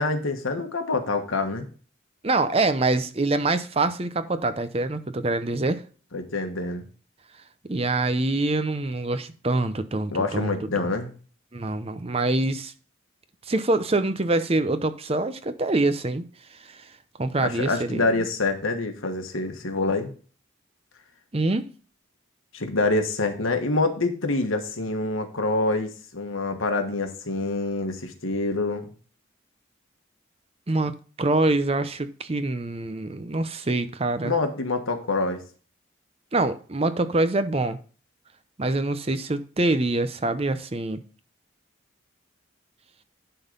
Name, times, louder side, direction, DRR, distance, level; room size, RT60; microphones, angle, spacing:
voice 1, 0.0-1.7 6.1-6.9 10.1-11.1 17.4-20.1 22.5-28.9 34.2-35.4, left 3 dB, 80° left, 1.4 m, -26 dB
voice 2, 2.2-5.8 7.7-10.9 11.5-12.7 13.5-16.2 16.6-16.8 17.2-18.3 21.3-21.6 30.7-34.3 36.3-37.8 38.6-41.0, right 2 dB, 30° right, 0.6 m, -25 dB
11.0 x 3.9 x 5.2 m
head